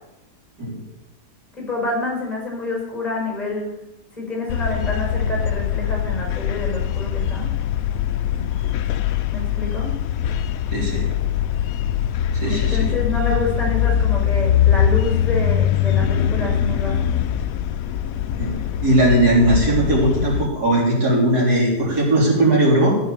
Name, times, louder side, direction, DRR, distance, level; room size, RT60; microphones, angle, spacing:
voice 1, 1.5-3.7 4.2-7.5 9.3-9.9 12.5-17.1, left 2 dB, 25° left, -1 dB, 5.6 m, -27 dB
sound 1, 4.5-20.5, left 10 dB, 70° left, 0.9 m, -22 dB
voice 2, 10.7-11.0 12.3-12.9 18.4-18.5 18.8-22.9, right 1 dB, 70° right, -4 dB, 4.4 m, -18 dB
14.0 x 7.8 x 7.1 m, 0.95 s
omnidirectional pair, 1.8 m